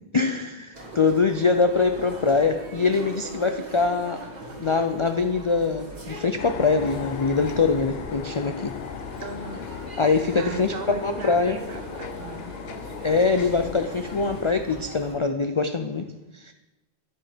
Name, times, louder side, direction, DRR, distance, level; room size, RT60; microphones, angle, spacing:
voice 1, 0.1-0.5 1.0-4.2 4.6-8.8 10.0-11.6 13.0-16.1 16.3-16.5, left 4 dB, 50° left, 7 dB, 0.3 m, -23 dB
sound 1, 0.7-15.2, right 1 dB, 40° right, 1.7 m, -41 dB
sound 2, 6.4-14.5, left 7 dB, 70° left, 0.8 m, -37 dB
voice 2, 9.2-9.6 10.3-12.5, right 4 dB, 60° right, 7 dB, 1.2 m, -37 dB
9.7 x 7.2 x 5.0 m, 1.0 s
omnidirectional pair, 1.1 m